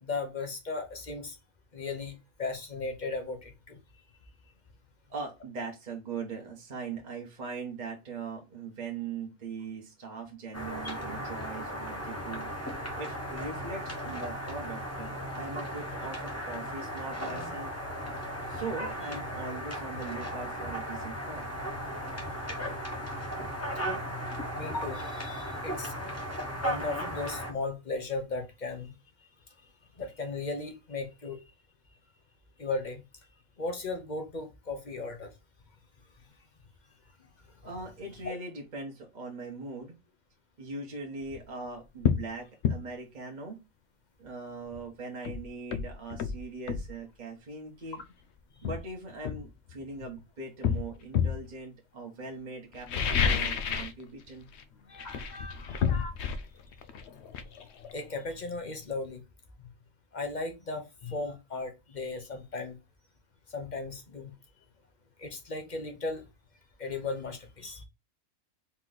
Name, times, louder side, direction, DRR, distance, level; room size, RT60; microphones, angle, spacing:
voice 1, 0.0-1.4 1.7-3.8 24.5-26.0 26.6-28.9 30.0-31.4 32.6-33.0 33.6-35.3 38.2-38.4 54.9-56.1 57.9-59.2 60.1-62.8 63.5-64.3 65.2-66.3 66.8-67.8, left 3 dB, 35° left, 0.9 m, -36 dB
voice 2, 5.1-12.5 13.0-17.7 18.5-21.4 37.6-40.0 40.6-43.6 44.2-48.0 48.6-54.5, right 4 dB, 35° right, 1.2 m, -40 dB
sound 1, 10.5-27.5, equal, 10° left, 1.1 m, -36 dB
sound 2, 41.2-41.4 42.0-42.3 42.6-42.8 44.7-44.8 45.3-46.9 48.0-48.1 48.6-50.0 50.6-51.4 52.7-54.0 54.3-54.6 54.9-58.5 58.8-58.9, left 7 dB, 65° left, 0.7 m, -30 dB
4.3 x 3.0 x 3.9 m
omnidirectional pair, 1.5 m